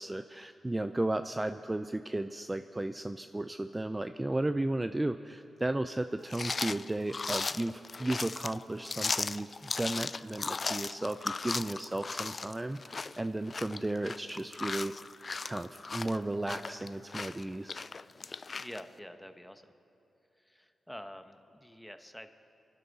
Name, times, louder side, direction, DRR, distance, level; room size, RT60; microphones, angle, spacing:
voice 1, 0.0-9.5 9.8-15.2 15.4-17.8, right 1 dB, 20° right, 9 dB, 0.4 m, -34 dB
sound 1, 6.3-18.8, left 4 dB, 45° left, 0.3 m, -37 dB
voice 2, 18.6-19.6 20.4-22.3, equal, 5° left, 8 dB, 1.0 m, -47 dB
27.0 x 11.5 x 4.1 m, 2.8 s
cardioid pair, 60°, 0 cm